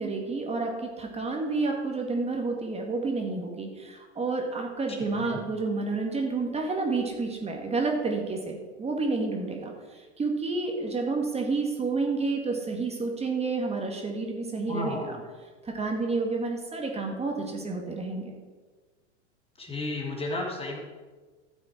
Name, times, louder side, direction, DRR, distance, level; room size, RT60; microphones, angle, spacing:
voice 1, 0.0-15.2 15.6-18.3, right 3 dB, 15° right, 1 dB, 2.0 m, -30 dB
voice 2, 4.9-5.4 14.7-15.1 19.6-20.8, left 2 dB, 15° left, 0 dB, 1.9 m, -33 dB
13.5 x 7.5 x 4.6 m, 1.4 s
hypercardioid pair, 95°, 36 cm